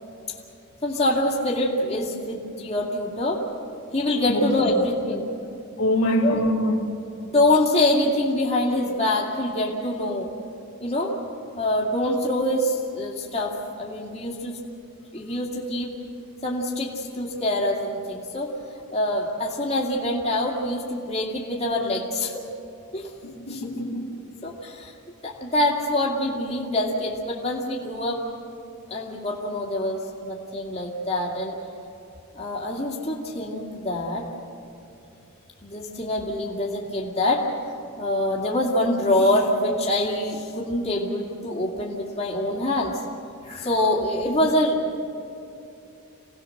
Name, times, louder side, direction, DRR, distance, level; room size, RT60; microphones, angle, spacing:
voice 1, 0.8-3.4 3.9-5.2 6.2-6.4 7.2-10.3 10.8-11.1 11.6-14.6 15.1-15.9 16.4-18.5 18.9-22.4 22.9-23.1 23.5-23.7 24.4-24.9 25.2-28.2 28.9-31.6 32.3-34.3 35.6-37.4 38.0-43.0 43.4-45.0, left 1 dB, 30° left, -3 dB, 2.4 m, -25 dB
voice 2, 4.3-4.7 5.8-6.8 23.2-24.2 44.3-44.4, left 1 dB, 70° left, -2 dB, 2.7 m, -24 dB
27.5 x 18.5 x 6.6 m, 2.8 s
head